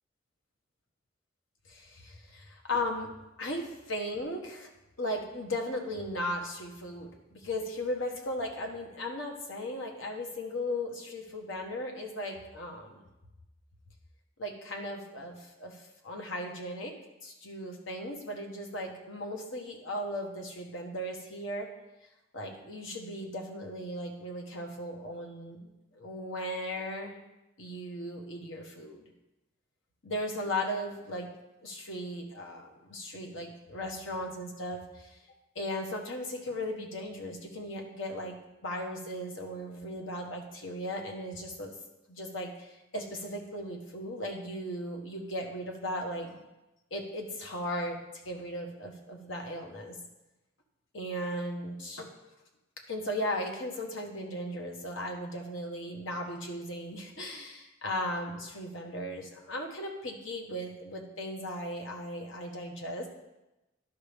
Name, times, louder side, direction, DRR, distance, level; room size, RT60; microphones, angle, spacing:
voice 1, 1.7-3.1 3.4-4.7 5.0-13.1 14.4-16.9 17.2-21.7 22.3-25.7 25.9-27.1 27.6-29.0 30.0-31.3 31.6-35.2 35.5-38.4 38.6-41.7 42.1-46.4 46.9-50.0 50.9-52.1 52.9-63.1, left 1 dB, 75° left, 2 dB, 1.3 m, -37 dB
12.0 x 5.4 x 3.5 m, 0.99 s
head